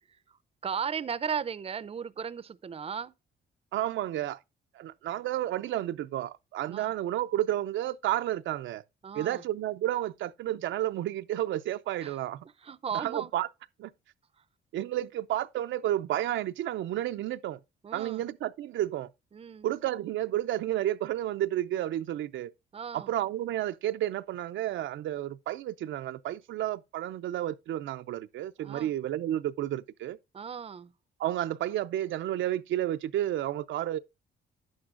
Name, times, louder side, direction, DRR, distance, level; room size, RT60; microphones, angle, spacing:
voice 1, 0.6-3.1 6.7-6.9 9.0-9.4 12.0-12.2 12.6-13.3 17.8-18.2 19.3-19.7 22.7-23.1 28.6-28.9 30.3-30.9, right 7 dB, 30° right, 0.6 m, -36 dB
voice 2, 3.7-4.4 4.7-8.8 9.1-12.5 12.9-13.5 13.8-13.9 14.7-17.6 17.9-19.1 19.6-22.5 22.9-30.2 31.2-34.0, right 13 dB, 75° right, 0.5 m, -31 dB
10.5 x 8.8 x 2.5 m
cardioid pair, 90°, 20 cm